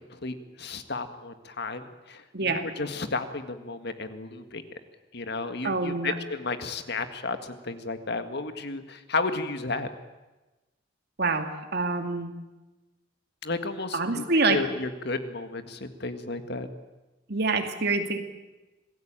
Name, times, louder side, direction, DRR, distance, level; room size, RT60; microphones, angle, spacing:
voice 1, 0.2-4.6 5.1-9.9 13.4-16.7, left 3 dB, 60° left, 8 dB, 1.9 m, -33 dB
voice 2, 2.3-2.7 5.6-6.1 11.2-12.4 13.9-14.6 17.3-18.2, right 3 dB, 60° right, 6 dB, 2.6 m, -26 dB
26.5 x 17.5 x 9.0 m, 1.1 s
head